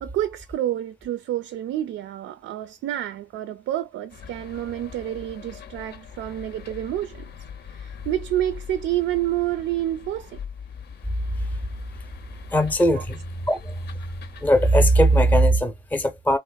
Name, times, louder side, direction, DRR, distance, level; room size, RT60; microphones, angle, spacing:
voice 1, 0.0-7.3 7.7-10.4 12.9-13.0, right 13 dB, 75° right, 0.4 m, -28 dB
sound 1, 4.1-15.5, left 7 dB, 55° left, 0.6 m, -42 dB
voice 2, 12.5-14.2 14.4-16.4, right 1 dB, 10° left, 0.6 m, -20 dB
3.1 x 2.1 x 2.3 m
cardioid pair, 90°, 20 cm